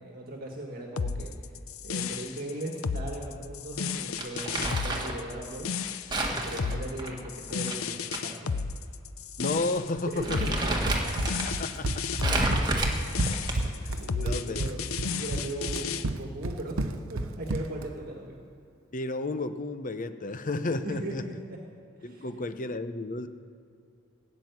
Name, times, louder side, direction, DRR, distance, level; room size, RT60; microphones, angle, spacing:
voice 1, 0.0-1.3 1.8-5.7 6.4-8.5 10.0-10.9 11.9-12.0 13.6-13.7 14.0-18.4 20.8-21.6 22.0-22.3, right 1 dB, 45° right, 0 dB, 1.6 m, -38 dB
sound 1, 1.0-16.0, left 5 dB, 85° left, 0.6 m, -33 dB
Crumpling crinkling, 4.2-5.2 6.1-8.2 8.5-8.6 9.4-9.6 10.0-11.5 12.2-13.8, right 1 dB, 20° right, 1.7 m, -30 dB
voice 2, 9.4-10.4 11.5-12.2 14.2-14.6 18.9-21.2 22.0-23.3, left 2 dB, 40° left, 10 dB, 0.8 m, -32 dB
Run, 10.9-17.9, right 2 dB, 85° right, 0.8 m, -31 dB
16.5 x 7.6 x 9.4 m, 2.5 s
head